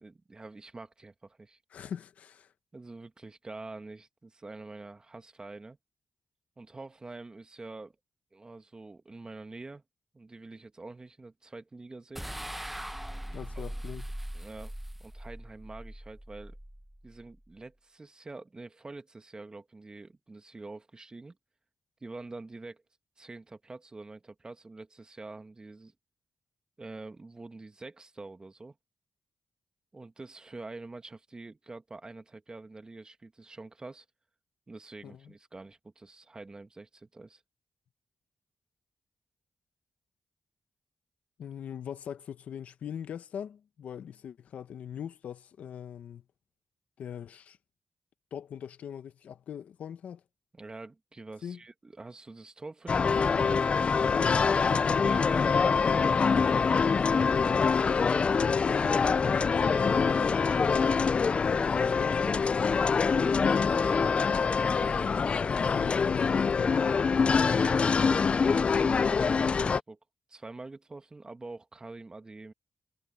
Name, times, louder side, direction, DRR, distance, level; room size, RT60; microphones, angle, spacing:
voice 1, 0.0-1.6 2.7-5.8 6.6-8.0 8.3-9.8 10.1-12.3 13.6-13.8 14.3-14.7 15.0-16.6 17.0-21.4 22.0-22.8 23.2-25.9 26.8-28.8 29.9-34.1 34.7-37.4 50.5-53.9 55.1-56.6 56.9-57.5 58.1-60.9 61.5-62.5 63.1-65.1 67.4-70.0 70.3-72.5, right 3 dB, 35° right, 2.0 m, -46 dB
voice 2, 1.7-2.5 13.3-14.1 35.0-35.3 41.4-46.2 47.0-47.6 48.3-50.2 51.4-51.6 54.1-55.1 62.0-62.1 65.5-67.3, left 8 dB, 80° left, 1.0 m, -41 dB
sound 1, 12.2-17.5, equal, 5° right, 1.1 m, -41 dB
sound 2, 52.9-69.8, left 5 dB, 55° left, 0.4 m, -25 dB
cardioid pair, 50°, 2 cm